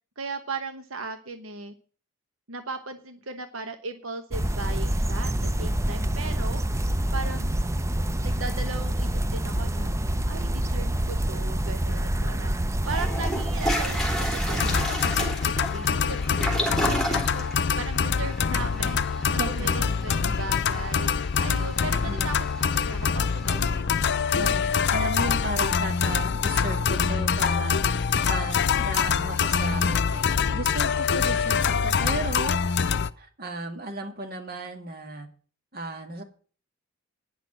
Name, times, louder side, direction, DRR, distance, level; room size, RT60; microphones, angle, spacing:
voice 1, 0.2-1.7 2.5-6.6 7.1-7.6 8.2-9.9 10.3-12.6 12.8-17.5 17.8-21.1 21.4-22.4 22.6-23.9, right 3 dB, 85° right, 7 dB, 1.1 m, -37 dB
sound 1, 4.3-14.9, right 1 dB, 15° right, 0.5 m, -27 dB
Toilet flush, 12.3-12.4 12.9-23.7, equal, 5° left, 3.0 m, -33 dB
sound 2, 14.5-33.1, left 6 dB, 60° left, 0.6 m, -25 dB
voice 2, 19.3-19.9 22.1-22.3 24.3-27.8 28.2-32.6 33.2-35.3 35.7-36.2, right 2 dB, 50° right, 3 dB, 2.1 m, -35 dB
10.0 x 6.2 x 8.9 m, 0.41 s
head